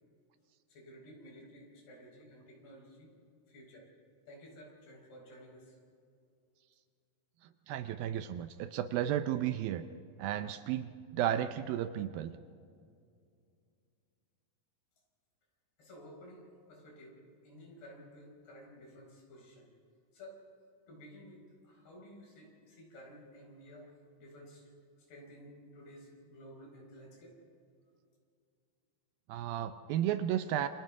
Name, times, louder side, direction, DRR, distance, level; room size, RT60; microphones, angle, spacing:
voice 1, 0.7-3.1 3.5-3.9 4.3-5.8 15.8-19.7 20.1-20.4 20.9-23.9 24.2-24.7 25.1-27.4, equal, 75° left, -1 dB, 6.8 m, -53 dB
voice 2, 7.7-9.8 10.2-12.4 29.3-30.7, right 11 dB, 80° right, 10 dB, 2.2 m, -33 dB
28.5 x 26.5 x 3.7 m, 2.4 s
omnidirectional pair, 4.5 m